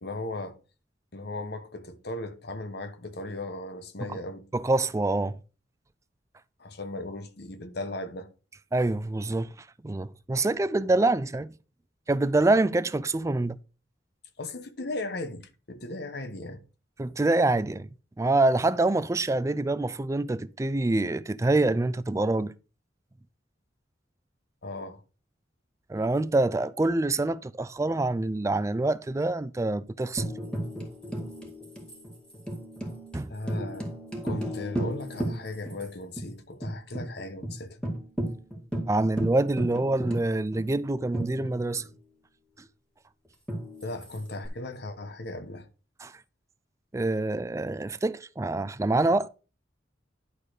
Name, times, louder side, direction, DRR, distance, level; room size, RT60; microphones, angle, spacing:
voice 1, 0.0-0.6 1.1-4.5 6.6-8.3 14.4-16.6 24.6-25.0 33.3-33.9 34.2-37.8 43.8-45.7, left 2 dB, 60° left, 1.1 m, -37 dB
voice 2, 4.5-5.4 8.7-9.5 9.8-11.5 12.1-13.6 17.0-17.9 18.2-22.5 25.9-30.2 33.1-33.3 38.9-41.8 46.0-46.1 46.9-49.3, right 2 dB, 15° right, 0.4 m, -26 dB
Tambourine, 30.2-35.9 36.2-36.3 36.6-37.1 37.4-37.5 37.8-41.9 43.5-44.5, right 1 dB, 5° left, 2.1 m, -34 dB
11.0 x 4.1 x 4.9 m
head